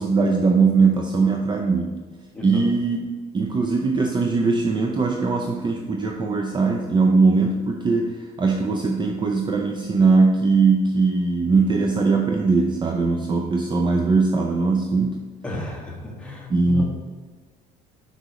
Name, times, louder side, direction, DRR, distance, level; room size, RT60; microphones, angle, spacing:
voice 1, 0.0-2.0 2.4-3.1 3.3-15.3 16.5-16.8, right 4 dB, 25° right, 3 dB, 0.6 m, -20 dB
voice 2, 15.4-16.8, left 3 dB, 5° left, -2 dB, 1.6 m, -32 dB
6.0 x 5.4 x 3.0 m, 1.4 s
supercardioid pair, 90°, 18 cm